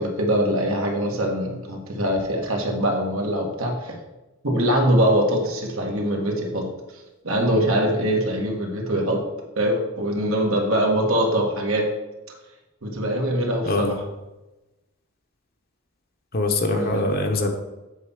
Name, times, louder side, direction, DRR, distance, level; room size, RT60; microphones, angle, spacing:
voice 1, 0.0-4.0 4.4-6.7 7.2-9.2 9.6-11.9 12.8-14.0 16.7-17.1, right 1 dB, 75° right, 0 dB, 1.8 m, -23 dB
voice 2, 13.6-14.0 16.3-17.5, left 2 dB, 45° left, 4 dB, 0.9 m, -23 dB
8.3 x 4.2 x 7.1 m, 1.0 s
head